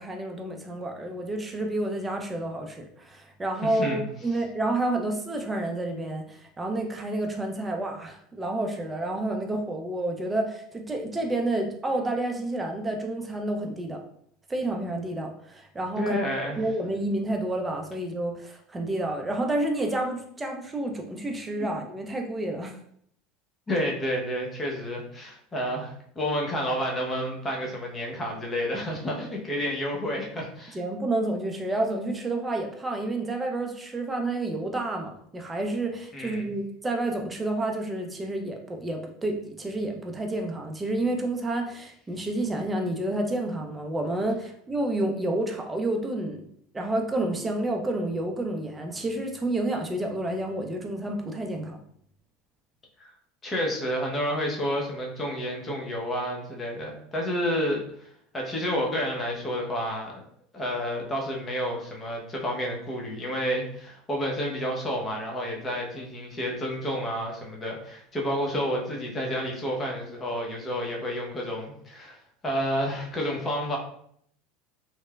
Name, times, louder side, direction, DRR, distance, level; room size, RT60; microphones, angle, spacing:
voice 1, 0.0-14.0 14.5-16.2 16.6-22.8 30.7-46.4 46.7-51.8, right 2 dB, 15° right, 2 dB, 0.5 m, -29 dB
voice 2, 3.6-4.0 16.0-16.6 21.6-21.7 23.7-30.8 36.1-36.5 53.0-53.1 53.4-58.1 58.3-60.2 60.5-72.2 72.4-73.8, equal, 25° left, -1 dB, 0.8 m, -30 dB
3.0 x 2.1 x 2.3 m, 0.66 s
hypercardioid pair, 80°, 0 cm